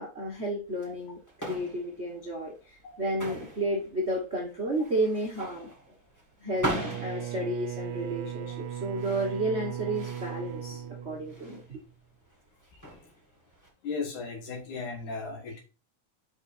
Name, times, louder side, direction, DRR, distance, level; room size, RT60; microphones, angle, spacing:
voice 1, 0.0-5.7 6.4-11.8, right 1 dB, 45° right, -2 dB, 0.8 m, -32 dB
sound 1, 0.7-13.7, right 1 dB, 10° left, 1.0 m, -41 dB
Bowed string instrument, 6.5-11.8, right 10 dB, 80° right, 2.0 m, -38 dB
voice 2, 13.8-15.6, left 4 dB, 80° left, 2 dB, 3.3 m, -36 dB
5.8 x 5.7 x 4.3 m, 0.33 s
omnidirectional pair, 3.5 m